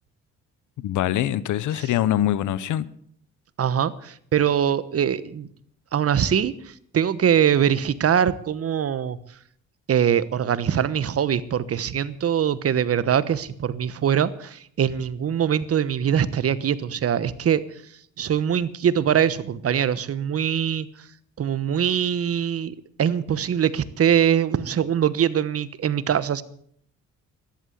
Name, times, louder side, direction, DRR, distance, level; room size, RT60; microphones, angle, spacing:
voice 1, 0.8-2.9, left 12 dB, 80° left, 0.9 m, -23 dB
voice 2, 3.6-5.5 5.9-6.5 6.9-9.2 9.9-17.6 18.2-20.9 21.4-26.4, right 8 dB, 50° right, 1.1 m, -22 dB
13.5 x 11.5 x 8.1 m
cardioid pair, 90°, 30 cm